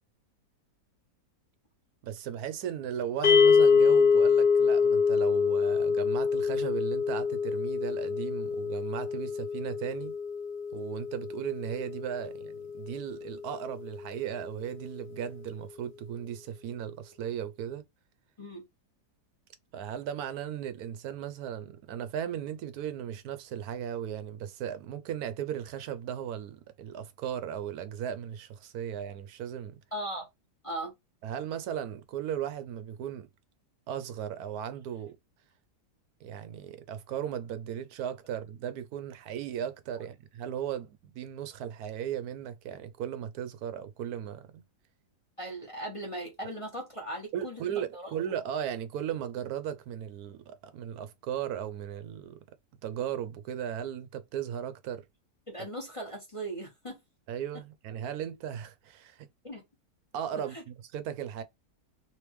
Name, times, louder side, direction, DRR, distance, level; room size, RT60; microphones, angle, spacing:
voice 1, 2.0-10.2 10.7-17.8 19.7-29.8 31.2-33.3 33.9-35.2 36.2-44.6 47.3-52.4 52.8-55.0 57.3-59.3 60.1-61.4, right 9 dB, 70° right, 1.0 m, -36 dB
sound 1, 3.2-13.5, left 5 dB, 45° left, 0.7 m, -26 dB
voice 2, 29.9-30.3 30.6-30.9 45.4-47.6 47.9-48.1 55.5-57.0 59.4-59.6 60.5-60.6, right 1 dB, 20° left, 1.1 m, -38 dB
3.4 x 3.1 x 3.0 m
omnidirectional pair, 1.8 m